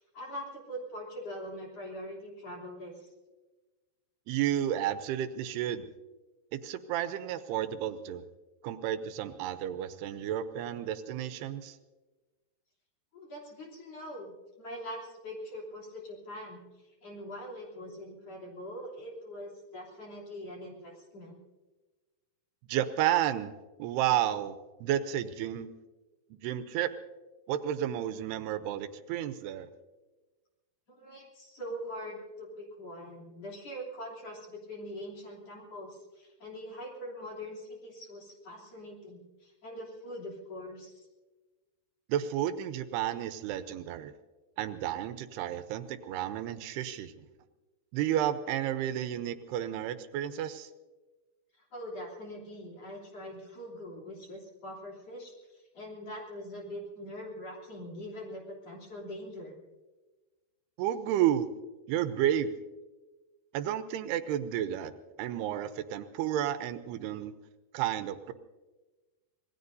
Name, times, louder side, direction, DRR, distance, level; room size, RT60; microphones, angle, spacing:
voice 1, 0.1-3.1 13.1-16.6 17.0-21.4 31.0-41.1 51.5-59.6, equal, 40° left, -3 dB, 3.9 m, -43 dB
voice 2, 4.3-5.9 6.5-8.2 8.6-11.8 22.7-23.5 23.8-25.7 26.4-26.9 27.5-29.7 42.1-44.1 44.6-47.3 47.9-50.7 60.8-61.5 61.9-62.5 63.5-64.9 65.2-67.3 67.7-68.3, right 11 dB, 80° right, 11 dB, 2.7 m, -31 dB
26.0 x 19.5 x 2.7 m, 1.2 s
omnidirectional pair, 4.7 m